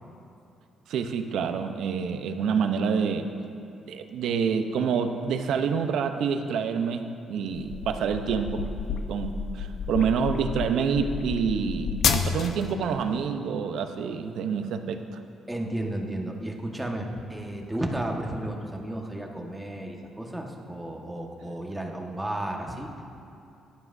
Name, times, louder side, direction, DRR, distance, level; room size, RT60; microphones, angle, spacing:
voice 1, 0.9-3.3 3.9-8.6 9.1-15.2, right 6 dB, 80° right, 7 dB, 0.7 m, -27 dB
sound 1, 7.5-12.7, left 6 dB, 70° left, 0.7 m, -30 dB
voice 2, 15.5-22.9, right 1 dB, 10° right, 1 dB, 1.4 m, -33 dB
17.0 x 11.5 x 2.7 m, 2.7 s
cardioid pair, 90°, 0 cm